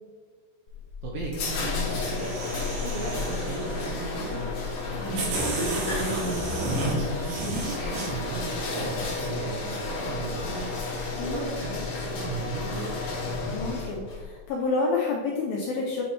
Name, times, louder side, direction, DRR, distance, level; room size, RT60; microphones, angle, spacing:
sound 1, 0.7-14.2, left 3 dB, 70° left, 1.7 m, -32 dB
voice 1, 1.0-4.4 5.1-10.7 11.2-13.0, right 4 dB, 85° right, -2 dB, 2.1 m, -36 dB
sound 2, 1.7-4.1 4.7-4.8 5.2-8.1, right 1 dB, 70° right, 3.1 m, -31 dB
sound 3, 4.5-13.5, equal, 40° right, 1.3 m, -44 dB
voice 2, 5.0-5.4 11.1-11.4 13.5-16.1, left 3 dB, 85° left, -2 dB, 2.0 m, -29 dB
8.5 x 3.0 x 4.2 m, 1.5 s
omnidirectional pair, 4.9 m